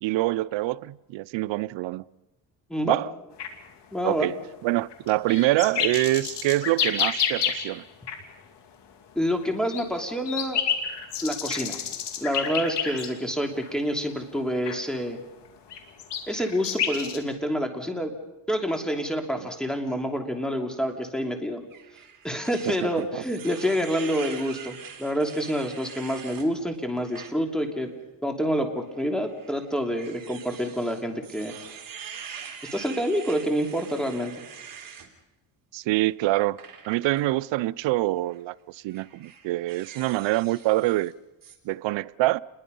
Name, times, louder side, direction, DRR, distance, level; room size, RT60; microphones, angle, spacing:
voice 1, 0.0-2.0 2.9-3.1 4.0-4.3 4.6-7.8 19.4-19.5 22.6-23.2 35.7-36.6 36.9-41.1 41.6-42.4, right 18 dB, 75° right, 0.7 m, -25 dB
sound 1, 3.4-3.6 4.7-7.8 8.1-8.2 9.4-13.3 13.6-13.7 14.7-14.8 15.5-17.2, left 7 dB, 60° left, 3.1 m, -29 dB
voice 2, 3.9-4.3 9.1-10.6 11.2-11.8 12.2-15.2 16.3-18.1 18.5-21.6 22.2-27.9 28.2-31.5 32.7-34.3, equal, ahead, 3.1 m, -27 dB
sound 2, 21.7-26.5 27.0-27.3 27.8-27.9 28.9-35.1 36.6-37.2 38.2-38.4 38.9-41.1 41.4-41.6, right 7 dB, 45° right, 3.5 m, -44 dB
29.0 x 21.5 x 5.5 m
cardioid pair, 115°, 46 cm